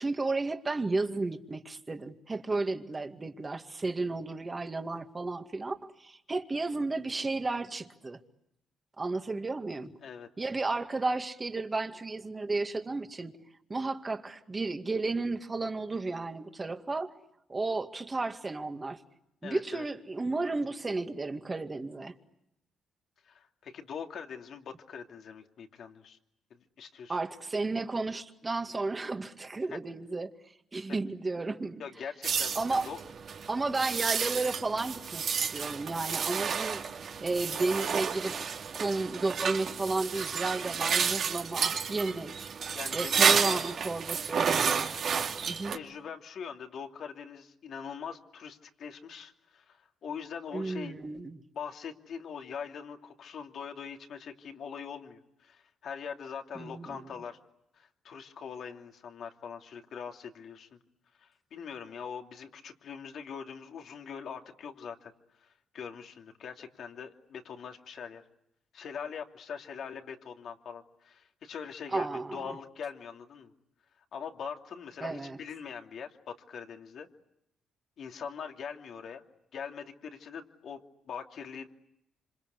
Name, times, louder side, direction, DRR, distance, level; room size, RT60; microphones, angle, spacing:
voice 1, 0.0-8.2 9.0-9.9 10.4-13.3 13.7-17.1 17.5-19.0 19.4-22.1 27.1-30.3 30.7-31.8 32.6-32.9 33.5-36.8 37.2-38.4 38.7-42.5 42.9-44.5 45.5-45.7 50.5-51.4 56.6-57.0 71.9-72.6 75.0-75.4, right 3 dB, 25° right, 6 dB, 2.2 m, -33 dB
voice 2, 19.4-19.9 23.3-26.2 26.5-27.2 29.7-29.8 31.8-33.0 42.7-43.6 45.7-51.0 51.5-57.4 57.8-60.8 61.2-65.1 65.4-68.2 68.7-73.5 74.1-77.1 78.0-79.2 79.5-80.8 81.0-81.7, left 7 dB, 65° left, 4 dB, 2.8 m, -42 dB
sound 1, 32.2-45.8, right 6 dB, 60° right, 2.3 m, -31 dB
26.5 x 26.5 x 8.3 m, 0.83 s
cardioid pair, 90°, 0 cm